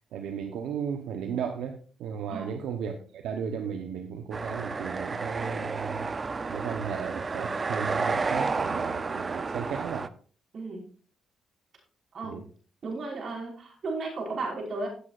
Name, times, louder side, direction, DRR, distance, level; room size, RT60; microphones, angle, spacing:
voice 1, 0.1-6.1 6.5-10.1 12.2-12.4, right 7 dB, 80° right, 5 dB, 1.0 m, -35 dB
sound 1, 4.3-10.1, right 4 dB, 35° right, 0.6 m, -31 dB
voice 2, 12.8-14.9, right 3 dB, 55° right, -1 dB, 5.4 m, -34 dB
16.5 x 8.3 x 2.6 m, 0.42 s
cardioid pair, 90°, 0 cm